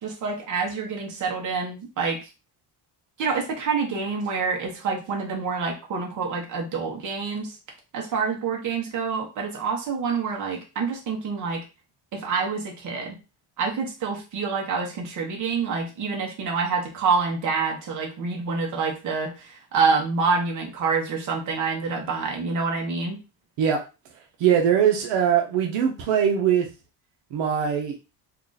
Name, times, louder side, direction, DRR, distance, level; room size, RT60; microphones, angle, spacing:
voice 1, 0.0-2.2 3.2-7.6 7.9-11.6 12.1-13.2 13.6-23.2, right 5 dB, 40° right, 0 dB, 1.1 m, -27 dB
voice 2, 24.4-26.7 27.3-27.9, right 8 dB, 75° right, 1 dB, 0.8 m, -21 dB
2.9 x 2.4 x 3.9 m, 0.30 s
cardioid pair, 175°, 45 cm